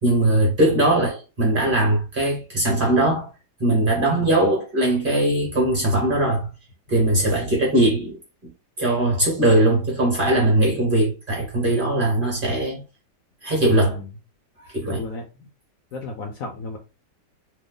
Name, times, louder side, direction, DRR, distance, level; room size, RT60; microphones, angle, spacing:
voice 1, 0.0-3.3 3.6-6.5 6.9-8.2 8.8-12.8 13.4-14.0 14.7-15.0, right 1 dB, 35° right, 1.0 m, -20 dB
voice 2, 7.2-7.5 9.5-9.7 13.7-14.1 14.8-15.5 15.9-16.8, left 2 dB, 65° left, 0.9 m, -33 dB
3.0 x 2.0 x 3.7 m
omnidirectional pair, 1.8 m